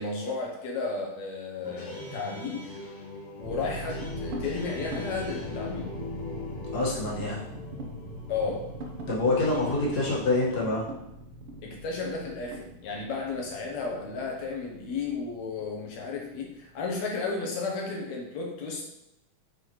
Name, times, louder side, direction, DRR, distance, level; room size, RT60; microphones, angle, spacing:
voice 1, 0.0-2.6 3.4-5.9 8.3-8.7 11.6-18.9, left 4 dB, 70° left, 0 dB, 1.9 m, -33 dB
sound 1, 1.6-10.2, left 3 dB, 90° left, 3.4 m, -40 dB
sound 2, 3.4-17.0, right 1 dB, 65° right, 1.4 m, -42 dB
voice 2, 6.7-7.4 9.1-10.8, left 2 dB, 40° left, -4 dB, 1.6 m, -26 dB
7.9 x 4.7 x 3.1 m, 0.85 s
omnidirectional pair, 3.6 m